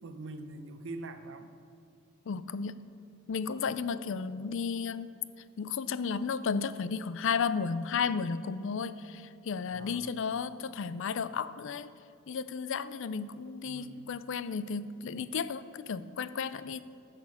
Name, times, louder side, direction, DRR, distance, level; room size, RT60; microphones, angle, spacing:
voice 1, 0.0-1.5 9.7-10.1 13.6-14.2, right 2 dB, 65° right, 9 dB, 0.7 m, -44 dB
voice 2, 2.3-2.7 3.3-5.1 5.6-11.9 12.3-16.8, left 5 dB, 65° left, 15 dB, 0.4 m, -33 dB
10.5 x 6.7 x 7.1 m, 2.4 s
head